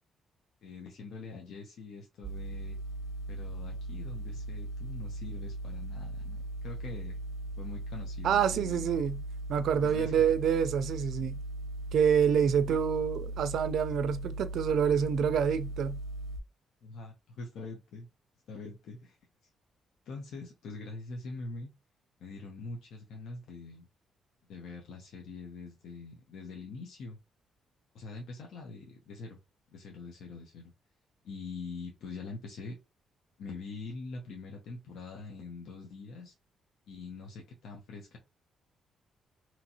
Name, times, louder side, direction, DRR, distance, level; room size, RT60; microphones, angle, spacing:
voice 1, 0.6-2.8 3.3-7.2 7.6-8.9 9.8-10.3 12.4-12.8 16.8-18.1 18.5-19.2 20.1-21.7 22.2-23.9 24.5-27.2 27.9-29.4 29.7-30.7 31.2-32.8 33.4-36.3 36.9-38.2, left 3 dB, 80° left, 0.7 m, -44 dB
sound 1, 2.2-16.4, right 1 dB, 15° right, 1.1 m, -38 dB
voice 2, 8.2-9.2 9.5-11.4 11.9-16.0, right 7 dB, 70° right, 0.4 m, -27 dB
2.9 x 2.6 x 2.8 m
cardioid pair, 105°, 0 cm